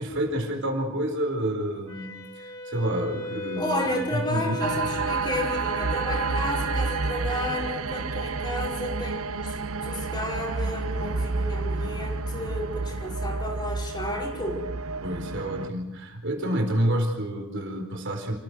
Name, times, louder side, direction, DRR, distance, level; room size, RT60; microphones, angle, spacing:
voice 1, 0.0-4.9 15.0-18.4, right 1 dB, 60° right, 3 dB, 4.5 m, -29 dB
Wind instrument woodwind instrument, 1.9-7.6, left 3 dB, 90° left, 4.4 m, -37 dB
voice 2, 3.6-9.6 9.8-14.6, left 1 dB, 20° left, -1 dB, 5.3 m, -32 dB
sound 1, 4.6-15.7, right 4 dB, 80° right, 1.0 m, -30 dB
29.0 x 15.0 x 6.3 m, 0.97 s
head